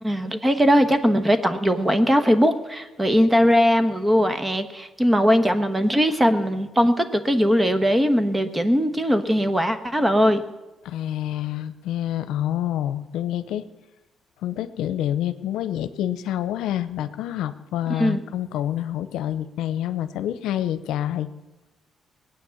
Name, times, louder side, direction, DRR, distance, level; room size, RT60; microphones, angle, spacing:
voice 1, 0.0-10.4 18.0-18.2, equal, 15° right, 9 dB, 1.3 m, -20 dB
voice 2, 10.8-13.6 14.4-21.3, left 11 dB, 90° left, 12 dB, 0.7 m, -27 dB
19.0 x 9.1 x 7.1 m, 1.1 s
cardioid pair, 90°, 0 cm